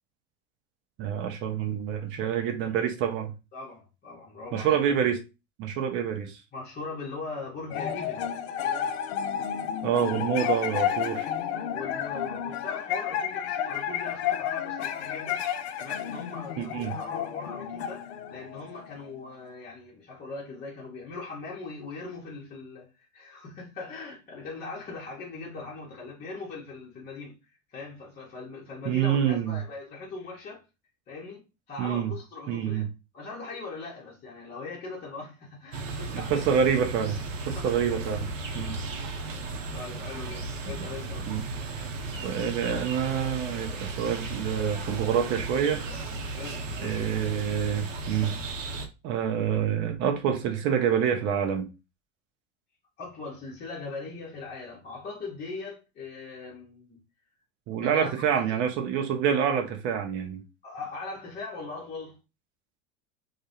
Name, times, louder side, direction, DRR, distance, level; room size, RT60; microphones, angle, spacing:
voice 1, 1.0-3.3 4.5-5.2 5.6-6.4 9.8-11.3 16.6-16.9 28.9-29.6 31.8-32.1 32.5-32.9 36.1-37.2 37.5-38.3 38.5-38.8 41.3-41.4 42.2-45.8 46.8-48.4 49.0-51.7 57.7-60.4, right 8 dB, 30° right, 0.4 m, -27 dB
voice 2, 3.5-4.8 6.5-8.3 10.4-10.6 11.7-15.4 15.7-27.4 27.7-30.6 31.1-32.9 33.1-36.6 37.4-37.7 38.6-38.8 39.3-39.4 39.7-41.3 46.3-47.2 53.0-57.0 57.8-58.6 60.6-62.2, left 3 dB, 25° left, 0.7 m, -40 dB
sound 1, 7.7-19.3, left 9 dB, 60° left, 0.4 m, -31 dB
sound 2, 35.7-48.9, right 2 dB, 75° right, 0.6 m, -35 dB
2.2 x 2.1 x 2.7 m
hypercardioid pair, 90°, 38 cm